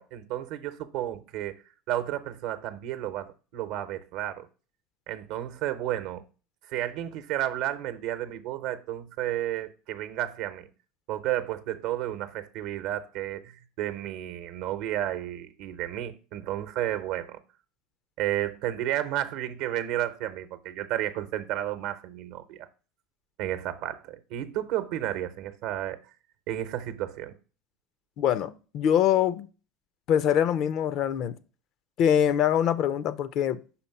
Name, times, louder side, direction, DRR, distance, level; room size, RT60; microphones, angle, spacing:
voice 1, 0.0-1.6 1.9-4.5 5.1-6.2 6.7-10.7 11.1-17.4 18.2-22.7 23.4-26.0 26.5-27.3, right 12 dB, 65° right, 0.7 m, -32 dB
voice 2, 28.2-29.5 30.1-31.4 32.0-33.6, left 9 dB, 55° left, 0.5 m, -24 dB
5.7 x 4.3 x 5.5 m
hypercardioid pair, 80°, 0 cm